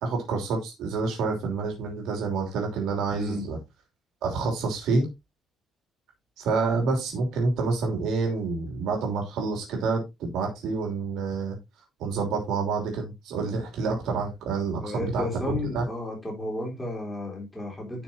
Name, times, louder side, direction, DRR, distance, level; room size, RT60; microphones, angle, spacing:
voice 1, 0.0-3.6 4.2-5.1 6.4-11.6 12.0-15.8, right 4 dB, 65° right, 2.9 m, -28 dB
voice 2, 3.1-3.5 14.8-18.0, left 2 dB, 5° left, 3.7 m, -33 dB
10.5 x 6.0 x 2.8 m
cardioid pair, 180°, 0 cm